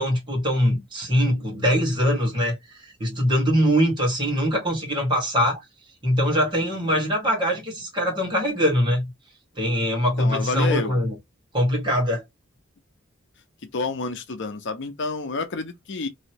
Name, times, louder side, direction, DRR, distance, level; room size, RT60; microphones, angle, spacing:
voice 1, 0.0-5.6 6.0-9.1 9.6-11.1 11.5-12.2, equal, 25° right, 1.8 m, -22 dB
voice 2, 10.2-11.0 13.7-16.1, left 3 dB, 60° left, 0.6 m, -29 dB
3.1 x 2.7 x 2.9 m
head